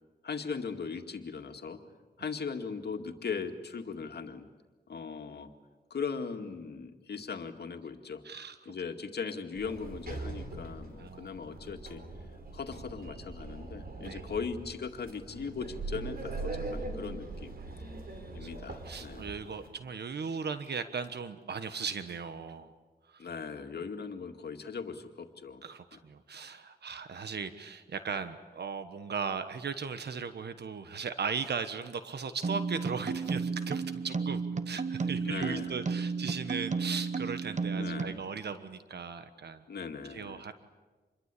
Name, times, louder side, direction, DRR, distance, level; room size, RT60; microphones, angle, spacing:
voice 1, 0.2-1.8 2.2-4.5 4.9-5.5 5.9-8.2 8.7-12.0 12.5-17.5 18.3-19.3 23.2-25.6 25.9-26.0 35.2-35.7 37.7-38.2 39.7-40.4, left 5 dB, 75° left, 5 dB, 2.1 m, -39 dB
voice 2, 8.2-8.6 11.0-11.4 11.6-11.7 14.0-14.2 17.6-18.0 18.4-18.5 18.8-22.7 23.1-23.3 25.6-34.4 34.7-39.6 40.1-40.5, right 5 dB, 80° right, 10 dB, 1.3 m, -37 dB
Sliding door, 9.6-19.7, right 3 dB, 65° right, 4.4 m, -41 dB
sound 1, 32.4-38.2, right 4 dB, 45° right, 1.1 m, -33 dB
27.5 x 22.0 x 8.4 m, 1.3 s
wide cardioid pair, 80°, 17 cm